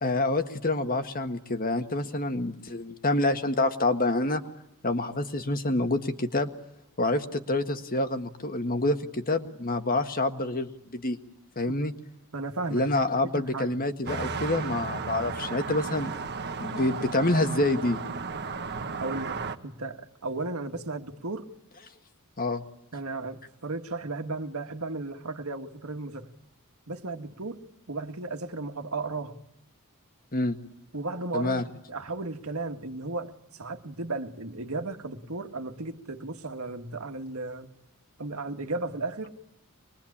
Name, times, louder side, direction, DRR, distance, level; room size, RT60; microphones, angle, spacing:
voice 1, 0.0-4.4 4.8-6.5 7.0-11.2 11.5-11.9 12.7-16.1 16.6-18.0 22.4-22.6 30.3-30.6 31.3-31.6, left 2 dB, 40° left, 1.6 m, -27 dB
voice 2, 12.3-12.9 13.3-13.8 19.0-21.5 22.9-26.3 26.9-29.4 30.9-31.6 31.9-37.7 38.2-39.4, right 3 dB, 70° right, 1.9 m, -35 dB
sound 1, 14.1-19.6, right 4 dB, 50° right, 1.4 m, -34 dB
25.0 x 22.0 x 8.7 m
head